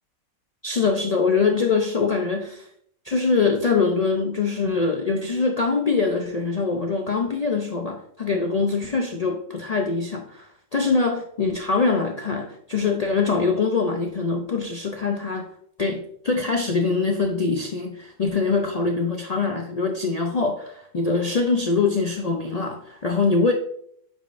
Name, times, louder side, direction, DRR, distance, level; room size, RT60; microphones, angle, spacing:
voice 1, 0.6-2.7 3.0-15.5 15.8-23.5, left 4 dB, 80° left, 2 dB, 0.3 m, -23 dB
8.8 x 5.2 x 2.5 m, 0.67 s
omnidirectional pair, 1.5 m